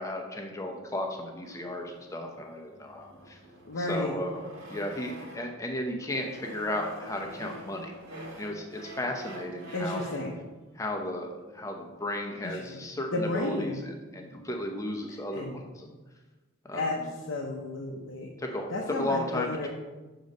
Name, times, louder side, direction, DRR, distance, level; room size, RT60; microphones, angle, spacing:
voice 1, 0.0-3.4 3.8-4.4 4.7-7.9 8.4-10.0 10.7-15.9 16.6-17.1 18.4-19.7, left 1 dB, 15° left, 2 dB, 0.7 m, -34 dB
sound 1, 1.4-5.6 6.0-10.4, right 1 dB, 85° right, 1.9 m, -46 dB
voice 2, 3.7-4.2 9.7-10.3 12.4-12.8 13.1-13.8 15.3-15.6 16.7-18.3 18.7-19.7, left 2 dB, 75° left, -2 dB, 0.7 m, -32 dB
6.6 x 3.9 x 5.3 m, 1.2 s
head